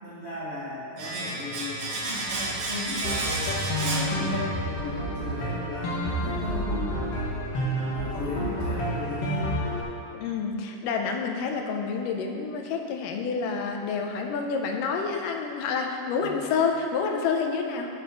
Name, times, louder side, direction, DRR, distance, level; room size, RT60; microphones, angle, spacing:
voice 1, 0.0-3.3 3.8-7.1 7.6-9.6 16.2-16.4, left 1 dB, 85° right, -10 dB, 0.5 m, -36 dB
Domestic sounds home sounds, 1.0-4.8 5.0-5.2, right 2 dB, 65° right, 1.3 m, -32 dB
sound 1, 3.0-9.8, equal, 55° left, 2.0 m, -29 dB
voice 2, 3.8-4.3 10.1-17.9, left 5 dB, 85° left, 3 dB, 2.3 m, -28 dB
6.6 x 6.2 x 5.3 m, 2.6 s
omnidirectional pair, 3.7 m